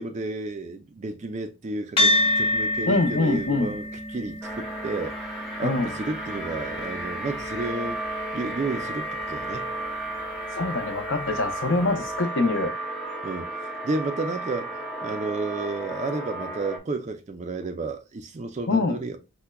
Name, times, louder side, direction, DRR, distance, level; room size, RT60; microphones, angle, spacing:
voice 1, 0.0-3.9 4.1-5.2 5.6-8.0 8.3-9.7 13.2-14.7 15.0-19.2, right 3 dB, 35° right, 0.4 m, -31 dB
sound 1, 2.0-10.6, left 1 dB, 25° left, 0.8 m, -29 dB
voice 2, 2.9-3.8 5.6-5.9 10.5-12.8 18.7-19.0, left 3 dB, 60° left, 0.6 m, -24 dB
sound 2, 4.4-16.8, right 1 dB, 5° right, 0.7 m, -33 dB
5.7 x 2.1 x 2.2 m
head